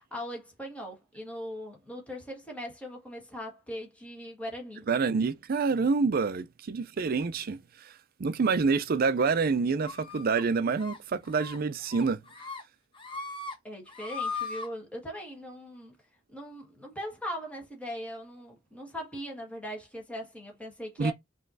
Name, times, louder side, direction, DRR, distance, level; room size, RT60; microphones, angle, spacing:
voice 1, 0.0-4.8 13.6-16.0 16.3-21.1, equal, 5° left, 1.6 m, -40 dB
voice 2, 4.9-7.9 8.2-12.2 21.0-21.1, right 4 dB, 50° right, 0.4 m, -27 dB
sound 1, 9.8-10.4 10.8-11.0 11.3-11.6 11.9-12.6 12.9-13.5 13.9-14.7, left 4 dB, 25° left, 1.1 m, -38 dB
5.5 x 3.0 x 2.6 m
head